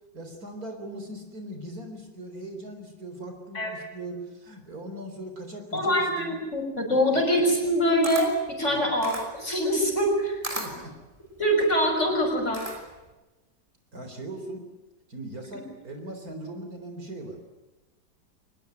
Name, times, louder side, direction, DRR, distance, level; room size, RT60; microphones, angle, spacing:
voice 1, 0.1-6.3 7.1-7.2 8.6-8.9 10.5-10.9 13.9-14.6 15.1-17.4, right 1 dB, 50° right, 5 dB, 4.4 m, -39 dB
voice 2, 5.7-10.4 11.4-12.6, equal, 40° left, 2 dB, 6.1 m, -24 dB
Camera, 7.6-13.1, right 1 dB, 20° right, 3.6 m, -38 dB
24.5 x 20.5 x 9.4 m, 1.1 s
omnidirectional pair, 1.9 m